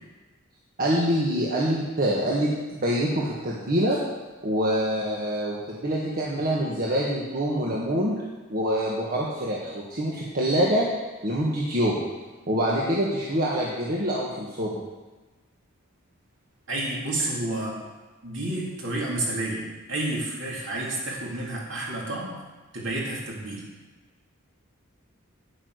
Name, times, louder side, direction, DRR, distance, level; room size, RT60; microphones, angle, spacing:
voice 1, 0.8-4.0 4.4-8.1 8.5-10.8 11.2-11.9 12.5-14.7, equal, 45° right, -5 dB, 1.6 m, -25 dB
voice 2, 16.7-17.8 18.2-19.6 19.9-22.4 22.7-23.6, right 2 dB, 60° right, -4 dB, 3.3 m, -30 dB
9.9 x 8.8 x 6.6 m, 1.2 s
head